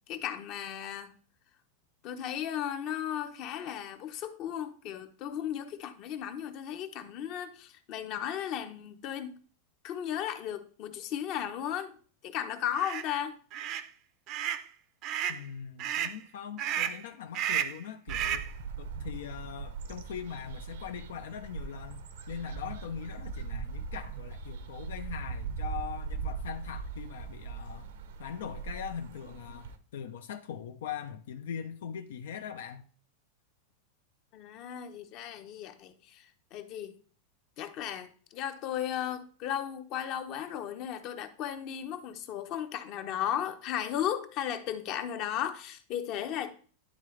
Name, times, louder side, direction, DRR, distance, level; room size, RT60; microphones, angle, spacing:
voice 1, 0.1-1.1 2.0-9.4 9.8-11.9 12.2-13.4 34.3-36.3 36.5-36.9 37.6-46.5, left 10 dB, 40° left, 0.7 m, -35 dB
sound 1, 12.7-13.0 13.5-13.9 14.3-14.6 15.0-15.4 15.8-16.2 16.6-17.0 17.3-17.8 18.1-18.5, right 10 dB, 40° right, 0.5 m, -32 dB
voice 2, 15.3-18.5 18.8-27.9 28.2-32.8, left 8 dB, 85° left, 0.6 m, -41 dB
sound 2, 18.1-29.8, right 5 dB, 80° right, 0.7 m, -40 dB
10.5 x 3.8 x 3.2 m
supercardioid pair, 155°, 0 cm